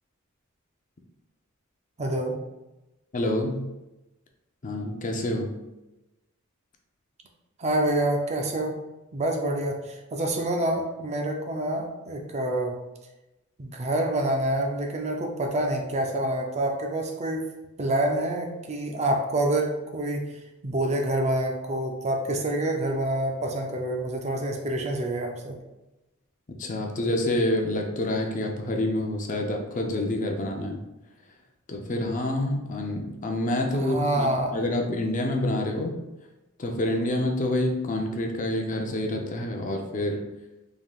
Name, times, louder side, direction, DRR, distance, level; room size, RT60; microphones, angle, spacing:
voice 1, 2.0-2.3 7.6-8.8 9.1-12.8 13.6-17.5 17.8-20.3 20.6-25.6 33.7-34.6, right 1 dB, 30° right, 2 dB, 0.5 m, -27 dB
voice 2, 3.1-3.7 4.6-5.5 26.6-30.8 31.7-34.3 34.5-36.0 36.6-40.2, left 1 dB, 40° left, 2 dB, 0.6 m, -27 dB
5.3 x 3.6 x 2.4 m, 0.99 s
head